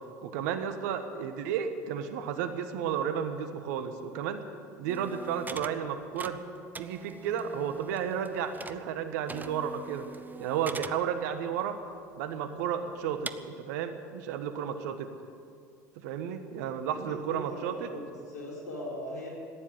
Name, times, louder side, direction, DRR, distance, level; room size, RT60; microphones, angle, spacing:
voice 1, 0.2-4.4 4.8-6.4 6.8-10.1 10.4-11.8 12.1-15.1 16.0-17.9, right 8 dB, 70° right, 8 dB, 1.4 m, -33 dB
sound 1, 4.9-9.0 9.3-11.0 11.6-11.7 12.3-12.4 13.3-13.4, right 3 dB, 20° right, 0.8 m, -43 dB
voice 2, 16.9-19.3, left 1 dB, 85° left, -3 dB, 4.7 m, -40 dB
15.0 x 10.0 x 9.2 m, 2.3 s
hypercardioid pair, 75°, 9 cm